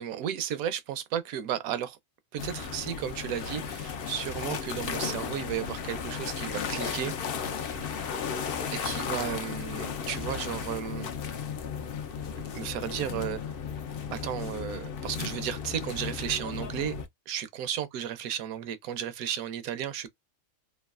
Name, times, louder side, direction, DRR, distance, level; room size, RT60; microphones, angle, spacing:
voice 1, 0.0-2.0 2.3-7.1 8.7-11.1 12.5-13.4 14.1-16.9 17.3-20.1, right 9 dB, 75° right, 1.0 m, -34 dB
sound 1, 2.4-17.1, left 6 dB, 85° left, 0.5 m, -35 dB
sound 2, 7.7-8.1 8.4-10.0 10.3-10.8 11.5-11.9 12.2-12.7 13.4-13.9 14.2-14.6, left 2 dB, 55° left, 0.9 m, -54 dB
3.1 x 2.3 x 2.3 m
omnidirectional pair, 1.6 m